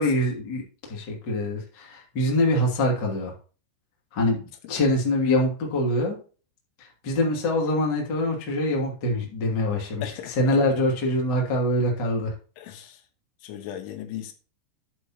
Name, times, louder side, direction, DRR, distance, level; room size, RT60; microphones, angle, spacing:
voice 1, 0.0-3.3 4.1-6.2 7.0-10.0 10.4-12.3, left 1 dB, 30° left, 2.5 m, -24 dB
voice 2, 10.0-10.6 12.6-13.0 13.4-14.3, left 11 dB, 85° left, 3.7 m, -37 dB
10.0 x 8.3 x 3.0 m
omnidirectional pair, 5.4 m